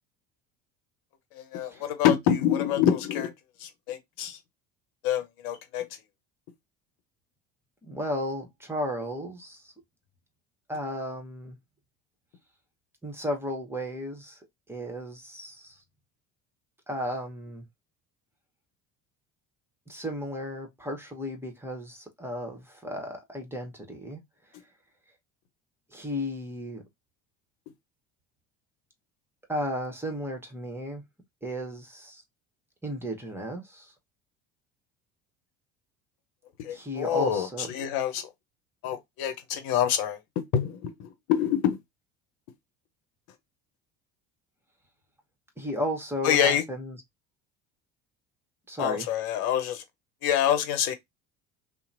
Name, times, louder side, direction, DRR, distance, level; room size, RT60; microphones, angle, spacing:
voice 1, 1.3-3.3 3.6-4.4 5.0-5.8 36.6-38.3 38.8-40.2 40.5-41.8 46.2-46.6 48.8-49.8 50.2-50.9, left 9 dB, 60° left, 0.9 m, -26 dB
voice 2, 7.8-9.7 10.7-11.6 13.0-14.4 14.7-15.8 16.9-17.6 19.9-24.2 25.9-26.8 29.5-31.0 31.4-32.2 32.8-33.9 36.7-37.7 45.6-47.0 48.7-49.1, equal, 5° right, 1.2 m, -34 dB
2.8 x 2.2 x 2.6 m
hypercardioid pair, 65°, 42 cm